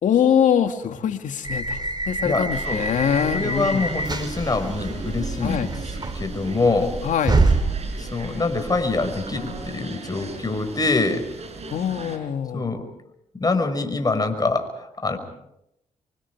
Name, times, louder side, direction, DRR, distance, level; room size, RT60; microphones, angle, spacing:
voice 1, 0.0-3.8 5.4-5.7 7.0-7.4 11.7-12.6, left 8 dB, 70° left, 7 dB, 2.3 m, -23 dB
sound 1, 1.4-9.8, right 3 dB, 35° right, 3.1 m, -27 dB
voice 2, 2.2-2.8 3.3-5.7 6.1-7.0 8.0-11.2 12.5-12.8 13.4-15.2, left 3 dB, 30° left, 7 dB, 5.6 m, -24 dB
sound 2, 2.5-12.2, right 4 dB, 55° right, 5.7 m, -38 dB
27.5 x 24.5 x 4.8 m, 0.80 s
supercardioid pair, 65°, 13 cm